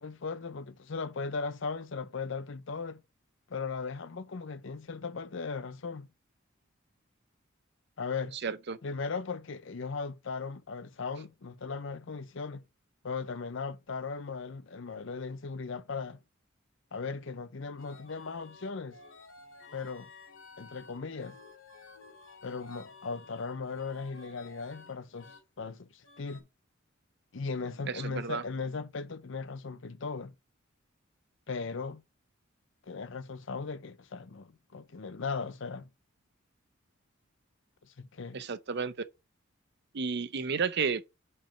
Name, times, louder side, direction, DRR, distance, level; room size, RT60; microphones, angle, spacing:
voice 1, 0.0-3.0 3.5-6.1 8.0-8.4 8.8-12.6 13.0-16.2 16.9-19.0 19.7-20.1 20.6-21.4 22.4-26.4 27.3-30.3 31.5-32.0 32.9-35.9 38.0-38.4, left 4 dB, 65° left, 0.6 m, -37 dB
voice 2, 8.4-8.8 27.9-28.4 38.3-38.9 39.9-41.0, right 5 dB, 55° right, 0.6 m, -32 dB
sound 1, 17.8-25.4 26.0-26.4, left 3 dB, 80° left, 2.3 m, -53 dB
5.9 x 4.7 x 5.6 m
head